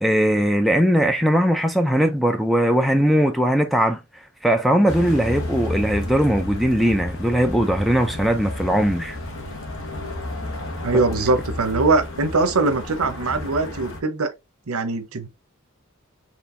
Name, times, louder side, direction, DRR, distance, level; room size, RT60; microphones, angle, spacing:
voice 1, 0.0-4.0 4.4-9.2, equal, ahead, 0.4 m, -19 dB
sound 1, 4.9-14.0, left 1 dB, 70° left, 1.0 m, -31 dB
voice 2, 10.8-14.3 14.7-15.3, right 3 dB, 85° right, 0.7 m, -22 dB
4.4 x 3.0 x 2.5 m
head